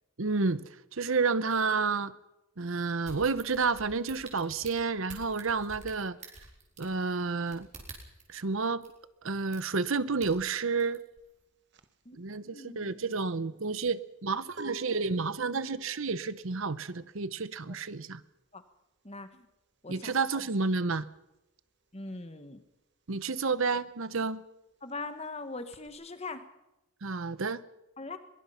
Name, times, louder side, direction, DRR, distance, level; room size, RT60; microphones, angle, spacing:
voice 1, 0.2-2.1 2.6-6.2 6.8-7.7 8.3-8.8 9.2-11.0 12.2-18.2 19.9-21.1 23.1-24.4 27.0-27.6, right 4 dB, 65° right, 15 dB, 0.9 m, -30 dB
sound 1, 3.0-8.3 8.8-8.9 9.5-9.9 10.2-11.0 11.4-11.5, right 3 dB, 30° right, 4.6 m, -48 dB
sound 2, 11.2-21.4 21.7-25.9, equal, 50° right, 1.4 m, -52 dB
voice 2, 12.5-13.1 17.7-17.8 18.5-18.6 19.0-19.5 19.8-20.4 21.9-22.6 24.8-26.4 28.0-28.2, left 3 dB, 30° left, 9 dB, 1.5 m, -41 dB
22.0 x 22.0 x 5.8 m, 0.95 s
head